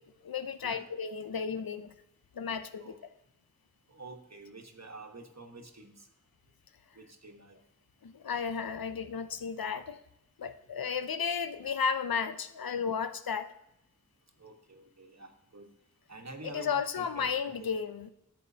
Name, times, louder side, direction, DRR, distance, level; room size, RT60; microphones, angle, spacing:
voice 1, 0.2-1.9 2.3-2.9 8.0-10.0 10.4-13.5 16.4-18.1, left 6 dB, 85° left, 12 dB, 0.6 m, -33 dB
voice 2, 3.9-6.1 6.9-7.6 14.4-15.7 16.1-17.7, right 2 dB, 50° right, 4 dB, 1.3 m, -48 dB
12.0 x 7.6 x 2.8 m, 0.86 s
wide cardioid pair, 45°, 34 cm